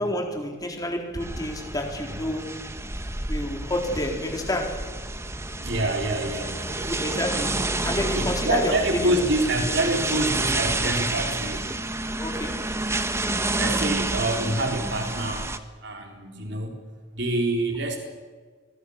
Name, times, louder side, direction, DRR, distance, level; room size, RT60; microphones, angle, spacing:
voice 1, 0.0-2.6 3.3-4.9 6.7-9.2 12.2-12.6, left 1 dB, 20° left, 2 dB, 4.0 m, -29 dB
sound 1, 1.2-15.6, right 2 dB, 15° right, 1.3 m, -29 dB
voice 2, 5.5-6.7 8.0-11.7 13.5-15.5 15.8-16.7 17.1-18.0, right 2 dB, 65° right, 2 dB, 4.1 m, -26 dB
28.0 x 22.0 x 6.6 m, 1.5 s
head